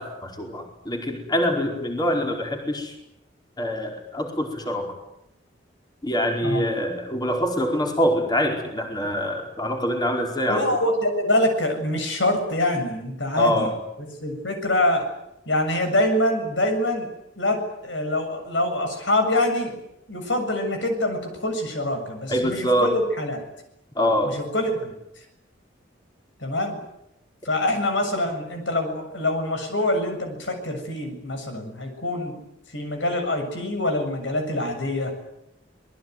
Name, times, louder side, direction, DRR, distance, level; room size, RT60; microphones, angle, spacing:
voice 1, 0.0-2.9 3.6-4.9 6.0-10.7 13.3-13.7 22.3-23.0 23.9-24.4, equal, 25° left, 2 dB, 4.7 m, -25 dB
voice 2, 10.5-13.7 14.2-15.1 15.5-19.8 20.1-23.4 24.2-24.9 26.4-26.8 27.4-32.4 32.7-35.1, left 1 dB, 75° left, 5 dB, 7.3 m, -25 dB
27.0 x 20.5 x 9.5 m, 0.85 s
head